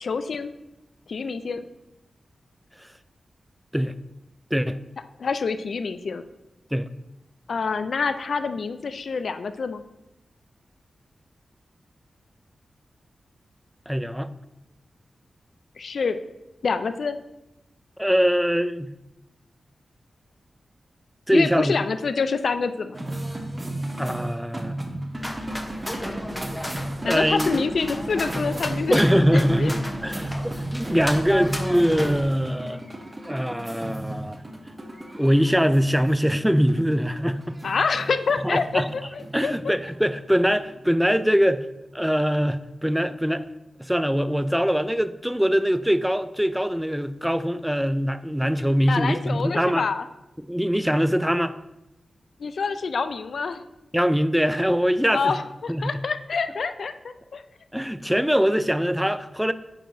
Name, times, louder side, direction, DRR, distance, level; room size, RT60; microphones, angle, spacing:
voice 1, 0.0-0.5 1.1-1.6 5.2-6.2 7.5-9.8 15.8-16.2 16.6-17.2 21.3-23.0 27.0-29.0 29.6-29.7 37.6-39.7 48.9-50.1 52.4-53.6 55.1-56.9 57.3-57.4, left 5 dB, 75° left, 10 dB, 0.3 m, -26 dB
voice 2, 13.9-14.3 18.0-18.9 21.3-21.8 24.0-24.8 27.0-27.6 28.9-32.8 33.3-34.4 35.2-37.6 38.4-38.9 39.3-41.7 41.9-43.4 43.8-49.8 50.4-51.6 53.9-55.3 55.7-55.9 57.7-59.5, equal, 5° right, 13 dB, 0.4 m, -22 dB
sound 1, 22.9-41.6, right 1 dB, 30° right, 1.1 m, -35 dB
sound 2, 25.2-32.2, left 1 dB, 10° left, 0.9 m, -34 dB
8.9 x 4.6 x 2.7 m, 0.92 s
cardioid pair, 50°, 0 cm